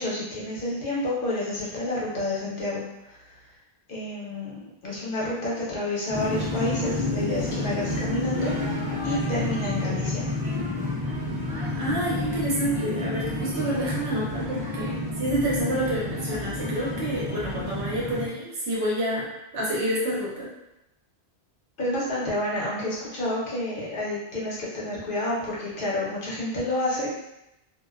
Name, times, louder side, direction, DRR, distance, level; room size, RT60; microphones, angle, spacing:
voice 1, 0.0-3.2 3.9-10.3 21.8-27.2, left 1 dB, 60° left, -6 dB, 0.9 m, -29 dB
sound 1, 6.1-18.3, left 2 dB, 10° right, 0.6 m, -30 dB
voice 2, 11.8-20.5, right 1 dB, 85° right, -6 dB, 1.1 m, -28 dB
2.5 x 2.2 x 2.2 m, 0.88 s
omnidirectional pair, 1.0 m